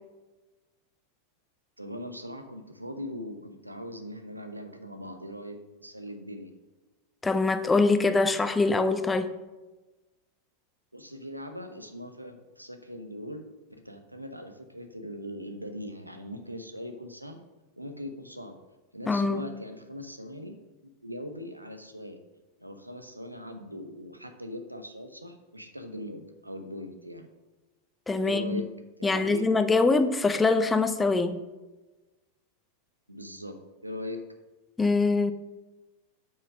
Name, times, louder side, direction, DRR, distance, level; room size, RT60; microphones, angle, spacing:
voice 1, 1.8-6.5 10.9-17.4 17.8-18.6 18.9-22.2 22.6-27.3 28.2-28.7 29.0-29.5 33.1-34.3, left 1 dB, 85° right, 0.9 m, -40 dB
voice 2, 7.2-9.3 19.1-19.5 28.1-28.6 29.0-31.4 34.8-35.3, left 3 dB, 10° left, 0.7 m, -24 dB
7.2 x 5.8 x 6.2 m
figure-of-eight pair, 90°, 0 cm